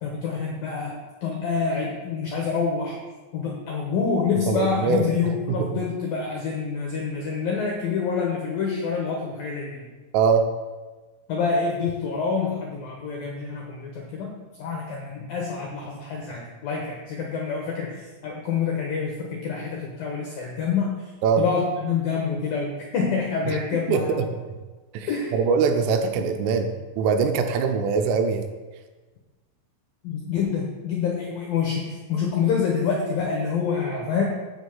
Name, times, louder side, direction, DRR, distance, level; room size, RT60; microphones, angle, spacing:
voice 1, 0.0-3.0 3.3-9.9 11.3-14.3 14.6-21.0 21.4-24.2 25.1-25.3 30.0-34.2, left 5 dB, 75° left, -1 dB, 2.1 m, -27 dB
voice 2, 4.5-5.1 5.5-5.7 10.1-10.5 21.2-21.4 23.5-24.3 24.9-26.7 27.0-28.5, right 5 dB, 80° right, 6 dB, 3.2 m, -22 dB
8.1 x 7.2 x 7.2 m, 1.3 s
omnidirectional pair, 6.0 m